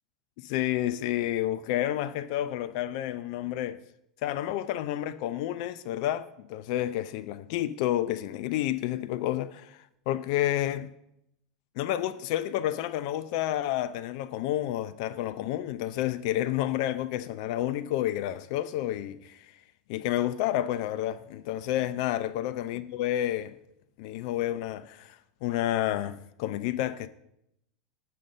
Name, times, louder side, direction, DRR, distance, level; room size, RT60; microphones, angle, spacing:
voice 1, 0.4-3.8 4.2-10.9 11.8-19.6 19.9-23.5 24.0-27.1, left 13 dB, 60° left, 0.4 m, -30 dB
7.5 x 5.4 x 5.2 m
hypercardioid pair, 90°, 4 cm